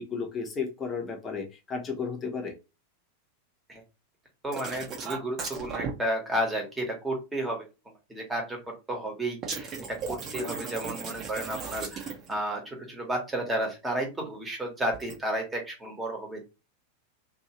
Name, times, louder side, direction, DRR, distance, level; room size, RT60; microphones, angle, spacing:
voice 1, 0.0-2.5, left 5 dB, 20° left, 1.0 m, -33 dB
voice 2, 4.4-7.6 8.1-16.4, right 1 dB, 10° right, 1.3 m, -32 dB
sound 1, 4.5-5.9 9.4-12.4 14.9-15.2, right 5 dB, 30° right, 0.9 m, -36 dB
2.8 x 2.6 x 3.0 m
figure-of-eight pair, 90°, 0 cm